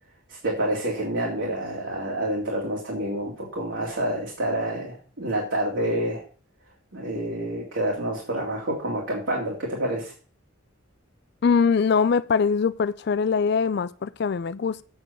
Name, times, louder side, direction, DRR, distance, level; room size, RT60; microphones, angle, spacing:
voice 1, 0.3-6.2 6.9-10.1, right 1 dB, 65° right, 2.3 m, -28 dB
voice 2, 11.4-14.8, left 5 dB, 55° left, 0.4 m, -22 dB
7.9 x 6.1 x 6.7 m
head